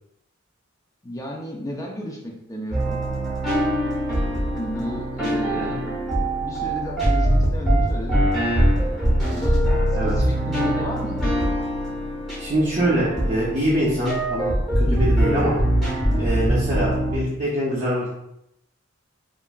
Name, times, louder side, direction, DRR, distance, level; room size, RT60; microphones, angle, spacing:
voice 1, 1.0-3.0 4.5-5.8 6.4-8.2 9.3-9.6 10.0-11.2 14.9-15.0 16.5-16.6, equal, 15° left, -1 dB, 0.4 m, -33 dB
sound 1, 2.7-17.2, right 1 dB, ahead, 0.8 m, -22 dB
voice 2, 12.4-15.6 16.2-18.1, right 1 dB, 35° right, -7 dB, 0.6 m, -24 dB
2.8 x 2.4 x 2.2 m, 0.79 s
head